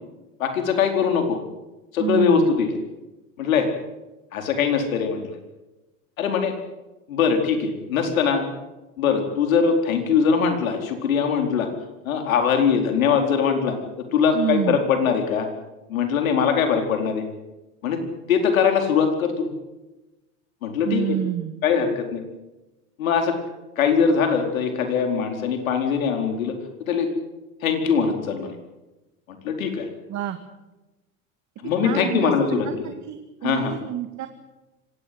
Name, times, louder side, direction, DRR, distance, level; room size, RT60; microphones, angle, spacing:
voice 1, 0.4-1.4 1.9-2.7 3.4-3.7 4.3-5.4 6.2-6.5 7.1-8.5 9.0-11.7 12.0-13.7 14.1-15.5 15.9-17.2 17.8-18.0 18.3-19.5 20.6-21.2 21.6-22.2 23.0-23.4 23.8-27.1 27.6-28.5 29.3-29.9 31.6-32.7 33.4-33.7, left 6 dB, 80° left, 5 dB, 4.5 m, -22 dB
voice 2, 2.0-2.5 14.3-14.8 20.8-21.5 30.1-30.4 31.8-34.3, right 11 dB, 45° right, 8 dB, 2.2 m, -28 dB
25.0 x 18.5 x 8.0 m, 1.0 s
hypercardioid pair, 80°, 41 cm